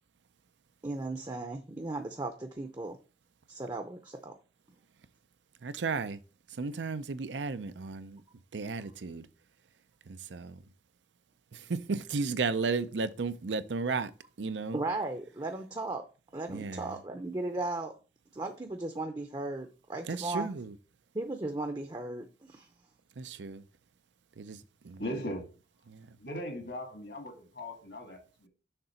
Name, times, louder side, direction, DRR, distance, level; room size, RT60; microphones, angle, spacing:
voice 1, 0.8-3.0 3.5-4.3 14.7-16.0 16.3-17.9 18.3-20.5 21.1-22.7, right 2 dB, 25° right, 0.6 m, -36 dB
voice 2, 5.6-6.2 6.5-8.2 8.5-9.3 10.1-10.6 11.5-14.1 14.4-14.8 16.5-17.0 20.1-20.7 23.2-23.6 24.4-25.0 25.9-26.2, right 4 dB, 90° right, 0.6 m, -34 dB
voice 3, 25.0-25.4 26.2-28.5, equal, 70° left, 1.8 m, -39 dB
6.7 x 3.8 x 5.6 m
head